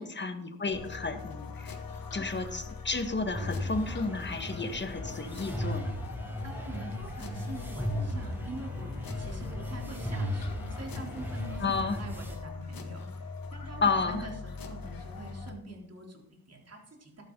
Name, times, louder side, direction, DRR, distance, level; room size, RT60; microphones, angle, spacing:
voice 1, 0.0-1.8 2.1-5.9 11.6-12.0 13.8-14.2, left 4 dB, 30° left, 7 dB, 1.6 m, -32 dB
sound 1, 0.7-15.5, left 4 dB, 70° left, 1.8 m, -42 dB
sound 2, 3.3-12.4, left 1 dB, 5° right, 4.6 m, -36 dB
voice 2, 6.4-17.2, right 2 dB, 45° right, 0 dB, 3.6 m, -45 dB
14.0 x 12.0 x 4.0 m, 0.75 s
wide cardioid pair, 95°, 36 cm